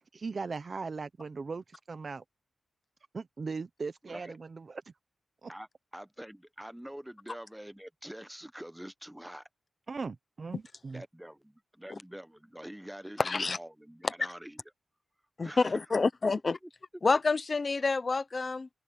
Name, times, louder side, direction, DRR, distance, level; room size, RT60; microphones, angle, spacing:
voice 1, 0.1-2.2 3.1-4.8 5.4-5.5 9.9-11.0, right 4 dB, 35° right, 0.9 m, -38 dB
voice 2, 5.9-9.4 10.9-14.6 15.4-15.7 16.0-16.1, equal, 5° right, 0.9 m, -45 dB
voice 3, 13.2-13.6 14.0-14.1 15.4-16.6 17.0-18.7, left 4 dB, 30° left, 0.8 m, -28 dB
wide cardioid pair, 180°, 0 cm